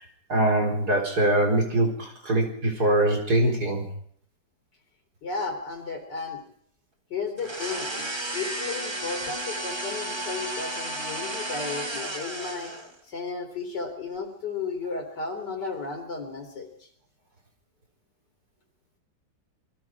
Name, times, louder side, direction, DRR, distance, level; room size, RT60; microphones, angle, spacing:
voice 1, 0.3-3.9, right 1 dB, 55° right, 0 dB, 4.8 m, -23 dB
voice 2, 5.2-6.4 7.1-12.7 13.1-16.9, left 4 dB, 65° left, 5 dB, 4.1 m, -34 dB
sound 1, 7.4-13.0, right 1 dB, 15° right, 1.6 m, -33 dB
27.0 x 20.5 x 4.8 m, 0.64 s
omnidirectional pair, 2.0 m